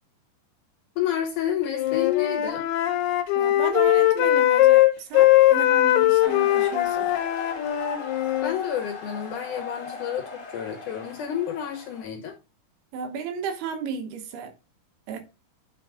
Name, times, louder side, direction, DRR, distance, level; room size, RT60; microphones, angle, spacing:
voice 1, 1.0-2.7 8.4-12.4, left 10 dB, 70° left, 2.0 m, -29 dB
Wind instrument woodwind instrument, 1.7-8.6, left 15 dB, 85° left, 3.0 m, -20 dB
voice 2, 3.4-7.1 12.9-14.5 15.1-15.2, right 6 dB, 80° right, 3.1 m, -33 dB
sound 1, 6.2-12.0, left 5 dB, 50° left, 0.9 m, -38 dB
9.0 x 4.3 x 3.6 m
omnidirectional pair, 4.4 m